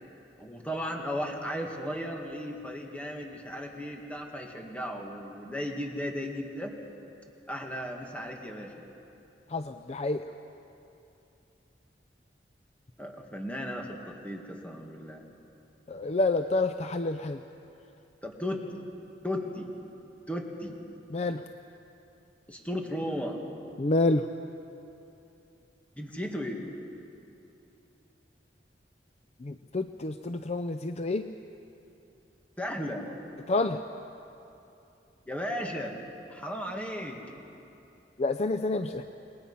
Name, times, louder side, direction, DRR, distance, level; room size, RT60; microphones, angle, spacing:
voice 1, 0.4-6.7 7.5-8.8 13.0-15.2 18.2-18.6 19.2-19.7 20.3-20.7 22.5-23.4 26.0-26.6 32.6-33.1 35.3-36.0 36.3-37.2, equal, 10° left, 1 dB, 2.2 m, -35 dB
voice 2, 9.5-10.2 15.9-17.4 21.1-21.4 23.8-24.3 29.4-31.3 33.5-33.8 38.2-39.0, left 2 dB, 40° left, 8 dB, 0.5 m, -28 dB
28.5 x 20.5 x 5.7 m, 2.8 s
head